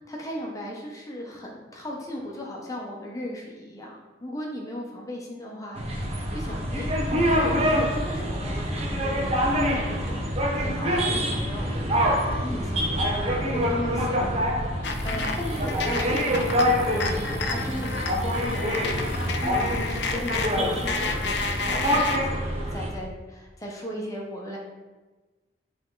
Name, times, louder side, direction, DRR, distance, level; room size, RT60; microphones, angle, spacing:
voice 1, 0.0-5.8 6.3-6.9 7.3-10.2 10.6-18.7 19.4-22.4 22.7-24.6, equal, 20° left, -2 dB, 1.1 m, -36 dB
sound 1, 5.8-22.9, equal, 35° right, 1.0 m, -26 dB
sound 2, 14.8-22.2, left 4 dB, 65° left, 0.7 m, -31 dB
10.0 x 3.8 x 3.9 m, 1.2 s
head